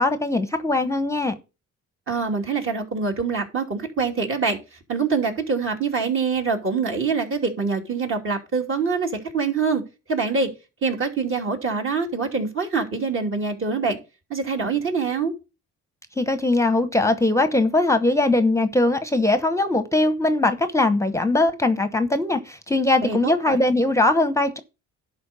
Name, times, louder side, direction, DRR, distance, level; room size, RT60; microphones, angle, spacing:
voice 1, 0.0-1.4 16.2-24.6, left 2 dB, 10° left, 0.9 m, -21 dB
voice 2, 2.1-9.8 10.1-10.5 10.8-14.0 14.3-15.3 23.0-23.6, right 4 dB, 45° right, 2.8 m, -25 dB
11.0 x 4.1 x 6.8 m
cardioid pair, 90°, 30 cm